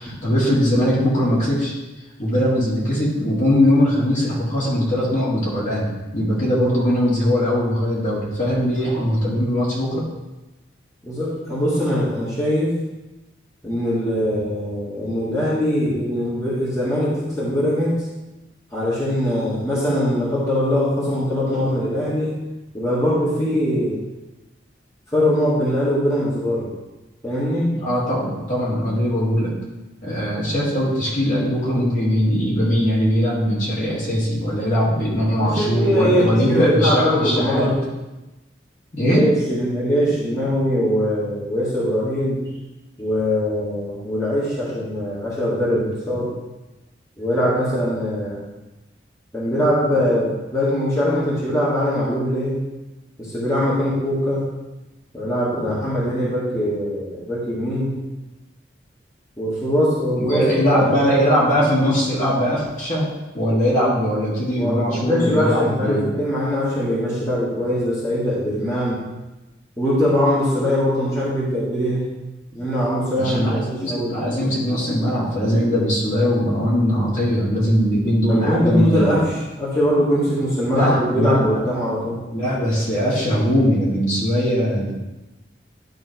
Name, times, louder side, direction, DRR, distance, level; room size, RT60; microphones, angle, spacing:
voice 1, 0.0-1.7 2.2-10.0 27.7-29.5 30.0-37.7 38.9-39.2 60.1-63.1 63.3-66.1 73.2-79.3 80.7-81.6 82.3-84.9, equal, 40° left, -6 dB, 2.4 m, -20 dB
voice 2, 11.0-12.7 13.6-18.0 18.7-22.3 22.7-24.0 25.1-26.7 27.2-27.7 35.4-37.8 39.0-42.4 43.0-46.3 47.2-48.4 49.3-52.6 53.2-54.4 55.1-57.9 59.4-61.4 64.6-69.0 69.8-72.0 72.5-74.2 78.3-82.2, equal, 20° left, -9 dB, 1.9 m, -21 dB
11.0 x 3.9 x 4.5 m, 1.1 s
head